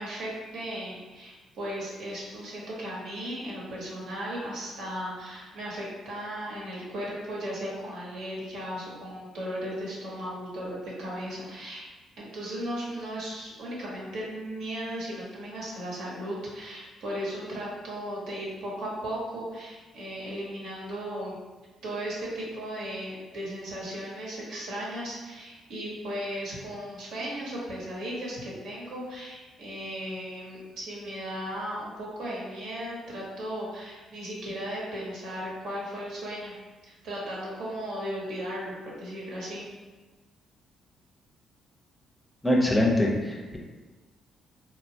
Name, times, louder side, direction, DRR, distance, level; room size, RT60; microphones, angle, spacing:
voice 1, 0.0-11.8 12.2-21.4 21.8-36.5 36.9-39.7, equal, 80° right, -5 dB, 0.9 m, -36 dB
voice 2, 42.4-43.6, left 1 dB, 15° left, -1 dB, 0.5 m, -23 dB
3.0 x 2.1 x 2.7 m, 1.3 s
cardioid pair, 90°, 0 cm